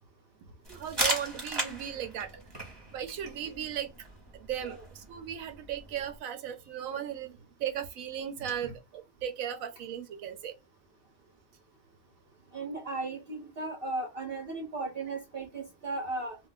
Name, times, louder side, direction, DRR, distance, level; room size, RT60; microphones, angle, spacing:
sound 1, 0.7-6.2, right 1 dB, 20° right, 0.8 m, -37 dB
voice 1, 0.7-2.3 2.9-3.9 4.3-10.6, right 9 dB, 75° right, 1.0 m, -36 dB
voice 2, 12.5-16.4, right 2 dB, 55° right, 0.7 m, -36 dB
2.4 x 2.1 x 3.7 m
omnidirectional pair, 1.5 m